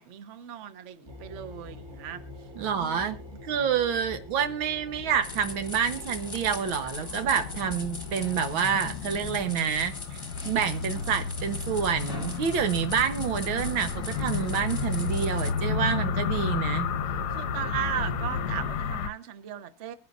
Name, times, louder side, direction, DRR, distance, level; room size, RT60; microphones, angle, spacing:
voice 1, 0.0-2.2 2.7-3.2 17.3-19.9, right 10 dB, 45° right, 1.1 m, -36 dB
sound 1, 1.1-18.7, left 1 dB, 15° right, 1.1 m, -44 dB
voice 2, 2.6-10.2 10.4-16.9, right 7 dB, 85° right, 1.9 m, -28 dB
sound 2, 4.9-19.1, left 6 dB, 65° left, 1.2 m, -33 dB
sound 3, 5.2-15.5, left 2 dB, 15° left, 1.1 m, -41 dB
23.0 x 10.5 x 2.5 m
omnidirectional pair, 2.1 m